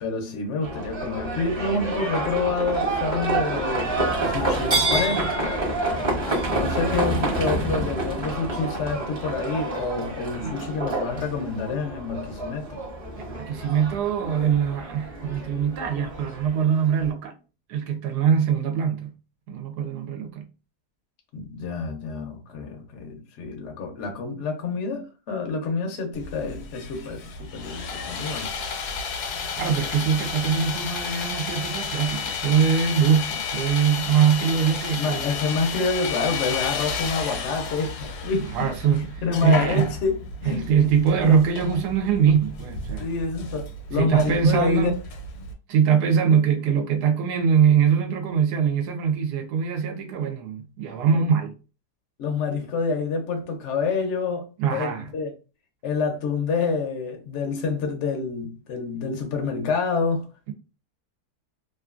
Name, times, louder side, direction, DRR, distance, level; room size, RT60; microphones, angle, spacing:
voice 1, 0.0-5.3 6.5-12.8 21.3-28.5 35.0-38.7 39.0-40.9 41.2-41.4 43.0-44.9 51.1-51.2 52.2-54.4 54.7-55.3 55.8-60.3, left 4 dB, 65° left, 0.8 m, -27 dB
Livestock farm animals working animals, 0.6-17.1, right 2 dB, 25° right, 0.6 m, -28 dB
voice 2, 10.3-10.7 13.2-17.3 17.7-19.1 19.5-20.5 29.6-35.4 38.5-39.9 40.4-43.1 43.9-45.0 45.7-51.5 54.6-55.1, right 7 dB, 80° right, 1.2 m, -22 dB
Sawing, 26.1-45.5, left 5 dB, 80° left, 1.2 m, -32 dB
2.9 x 2.5 x 2.4 m
omnidirectional pair, 1.7 m